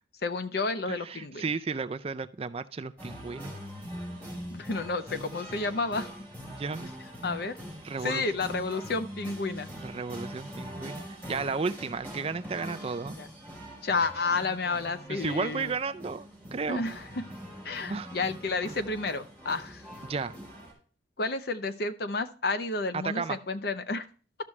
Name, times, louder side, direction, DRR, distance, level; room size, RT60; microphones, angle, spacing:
voice 1, 0.2-1.4 4.5-6.1 7.2-7.6 8.0-9.7 13.2-13.3 13.8-15.7 16.7-17.2 17.6-19.8 21.2-24.1, left 3 dB, 55° left, 9 dB, 0.7 m, -31 dB
voice 2, 0.9-3.5 6.5-6.9 7.8-8.3 9.8-13.2 15.1-16.8 17.9-18.1 18.7-18.8 20.0-20.4 22.9-23.4, right 4 dB, 30° right, 12 dB, 0.4 m, -33 dB
sound 1, 3.0-20.7, equal, 10° left, 3.4 m, -43 dB
12.5 x 6.0 x 3.2 m, 0.39 s
head